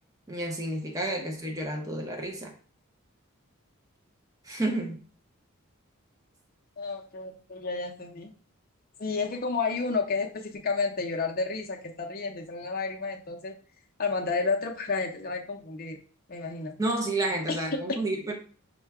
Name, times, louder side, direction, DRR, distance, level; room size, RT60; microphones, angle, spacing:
voice 1, 0.3-2.5 4.4-5.0 16.8-18.3, right 2 dB, 15° right, 1 dB, 0.7 m, -30 dB
voice 2, 6.8-8.4 9.0-13.6 14.0-16.0 16.3-16.7 17.5-18.0, left 4 dB, 40° left, 2 dB, 0.6 m, -31 dB
5.5 x 2.2 x 3.4 m, 0.41 s
head